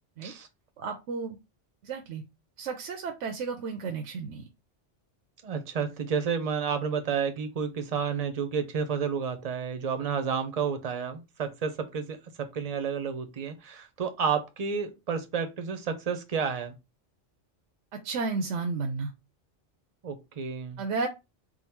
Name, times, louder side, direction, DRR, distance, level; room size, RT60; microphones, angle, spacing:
voice 1, 0.8-1.4 1.8-2.2 2.6-4.5 17.9-19.1 20.8-21.1, right 4 dB, 80° right, 1.0 m, -32 dB
voice 2, 5.4-16.8 20.0-20.8, right 6 dB, 40° right, 0.6 m, -31 dB
3.7 x 2.3 x 4.3 m
omnidirectional pair, 1.2 m